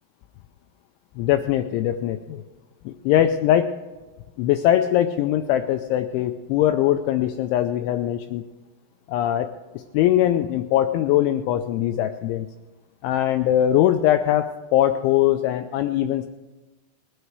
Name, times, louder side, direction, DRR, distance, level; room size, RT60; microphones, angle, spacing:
voice 1, 1.2-2.4 2.9-3.7 4.4-8.4 9.1-9.5 9.7-12.5 13.0-16.3, left 12 dB, 85° left, 8 dB, 2.7 m, -21 dB
20.0 x 9.6 x 4.7 m, 1.2 s
omnidirectional pair, 6.0 m